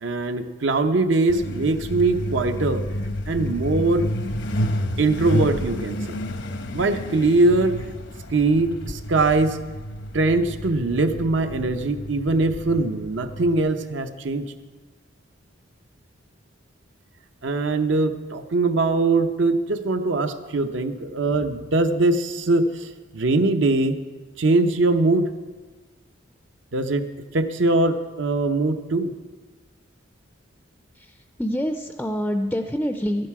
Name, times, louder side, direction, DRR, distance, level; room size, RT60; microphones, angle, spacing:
voice 1, 0.0-2.8 3.3-4.1 5.0-6.2 6.7-7.8 8.3-9.6 10.1-14.4 17.4-24.0 24.4-25.3 26.7-27.0 27.3-29.1, right 2 dB, 80° right, 8 dB, 0.8 m, -22 dB
Truck, 1.3-13.6, equal, 75° left, 0.8 m, -30 dB
voice 2, 30.9-33.3, equal, 5° left, 6 dB, 0.3 m, -26 dB
13.0 x 11.0 x 4.8 m, 1.4 s
head